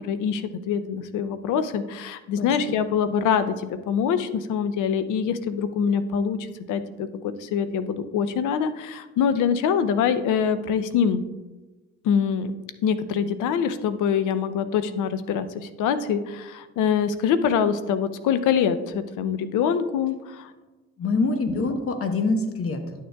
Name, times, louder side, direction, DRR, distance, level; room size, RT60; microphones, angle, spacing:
voice 1, 0.1-11.2 12.0-12.5 12.8-20.5, left 7 dB, 85° left, 12 dB, 0.6 m, -24 dB
voice 2, 21.0-22.9, left 3 dB, 50° left, 6 dB, 1.0 m, -25 dB
11.0 x 6.5 x 2.3 m, 1.2 s
cardioid pair, 90°, 30 cm